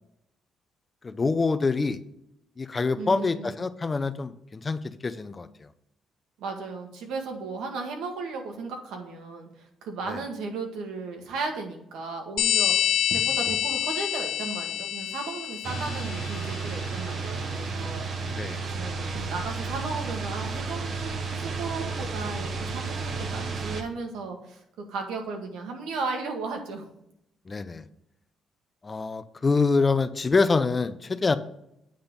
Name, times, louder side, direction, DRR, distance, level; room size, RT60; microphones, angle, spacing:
voice 1, 1.0-2.0 2.6-5.5 10.1-10.2 18.3-18.6 23.1-23.6 27.5-27.8 28.8-31.4, left 4 dB, 30° left, 13 dB, 0.6 m, -26 dB
voice 2, 2.9-3.5 6.4-18.1 18.7-24.6 24.9-26.8, right 4 dB, 90° right, 3 dB, 1.7 m, -35 dB
sound 1, 12.4-16.7, left 10 dB, 90° left, 0.6 m, -27 dB
sound 2, 15.6-23.8, right 4 dB, 55° right, 1.1 m, -32 dB
8.8 x 3.9 x 6.8 m, 0.79 s
cardioid pair, 90°, 0 cm